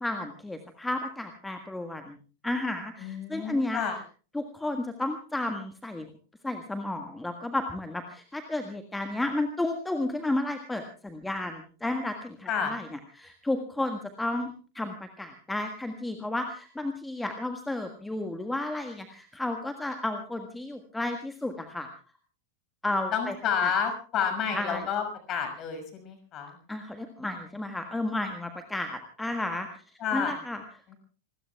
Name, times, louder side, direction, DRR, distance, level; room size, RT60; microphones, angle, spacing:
voice 1, 0.0-2.2 2.4-3.8 4.3-6.1 6.4-12.9 13.2-21.9 22.8-23.3 24.5-24.8 26.7-29.7 30.1-30.6, left 2 dB, 5° left, 6 dB, 1.6 m, -32 dB
voice 2, 3.0-4.0 12.5-12.7 23.1-26.6 30.0-30.3 30.9-31.0, left 7 dB, 30° left, 6 dB, 6.2 m, -30 dB
28.0 x 20.5 x 2.4 m, 0.39 s
figure-of-eight pair, 90°, 0 cm